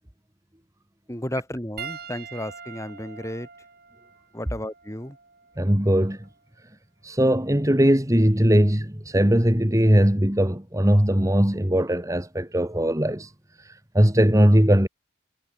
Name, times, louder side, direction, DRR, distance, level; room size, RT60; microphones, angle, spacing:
voice 1, 1.1-3.5 4.3-5.2, left 1 dB, 15° left, 4.0 m, -33 dB
Piano, 1.8-6.4 7.4-7.6 9.5-9.6, right 7 dB, 55° right, 8.0 m, -43 dB
voice 2, 5.6-6.2 7.0-13.3 13.9-14.9, equal, 15° right, 2.0 m, -19 dB
head